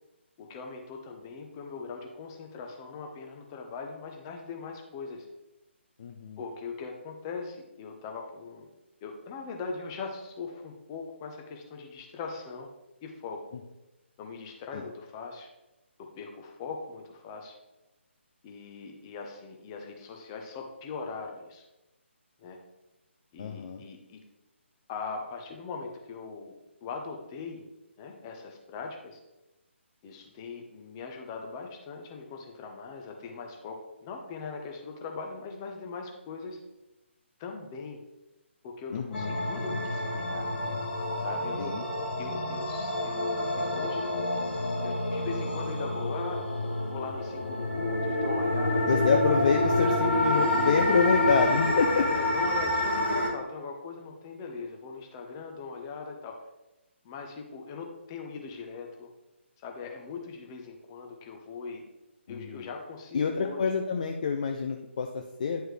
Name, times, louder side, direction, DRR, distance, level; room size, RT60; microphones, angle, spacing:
voice 1, 0.4-5.3 6.4-8.7 9.0-12.7 13.0-13.4 14.2-15.5 16.1-17.5 18.4-21.6 22.4-22.6 23.3-24.2 24.9-26.5 26.8-27.6 28.0-29.2 30.0-36.6 37.4-38.0 38.6-40.5 41.2-41.9 42.2-44.1 44.8-46.5 46.9-48.8 51.6-56.4 57.0-59.1 59.6-61.8 62.3-63.7, left 4 dB, 20° left, 2 dB, 0.9 m, -40 dB
voice 2, 6.0-6.4 14.7-14.8 23.4-23.8 38.9-39.4 41.6-41.8 48.9-52.1 62.3-62.7 63.1-65.6, left 5 dB, 40° left, 4 dB, 0.5 m, -27 dB
sound 1, 39.1-53.3, left 1 dB, 60° left, 1.6 m, -28 dB
10.0 x 4.6 x 3.3 m, 0.99 s
figure-of-eight pair, 145°, 7 cm